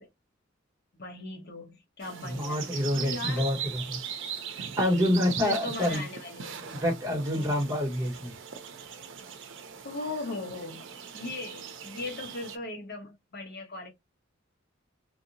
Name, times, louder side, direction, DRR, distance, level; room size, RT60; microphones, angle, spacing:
voice 1, 0.9-2.7 2.9-3.5 5.4-6.6 7.3-7.6 9.8-10.8 11.1-13.9, left 2 dB, 50° left, 1.2 m, -38 dB
sound 1, 2.0-12.6, right 7 dB, 65° right, 0.6 m, -40 dB
voice 2, 2.2-4.0 4.6-6.0 6.6-8.3, left 1 dB, 15° right, 1.5 m, -27 dB
3.2 x 2.8 x 2.7 m
head